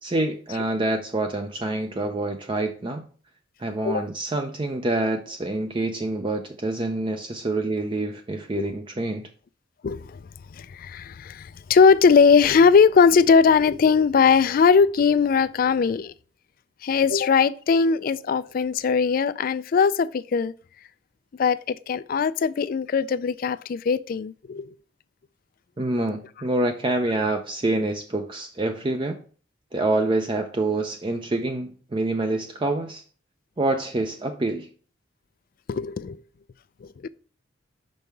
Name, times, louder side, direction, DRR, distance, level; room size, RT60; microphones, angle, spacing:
voice 1, 0.0-3.0 3.6-9.2 25.8-29.2 29.7-33.0 33.6-34.7, right 2 dB, 25° right, 0.5 m, -26 dB
voice 2, 9.8-10.2 10.6-16.1 16.8-20.5 21.4-24.7 35.7-36.2 36.8-37.1, left 5 dB, 45° left, 0.3 m, -20 dB
5.6 x 5.4 x 4.6 m
head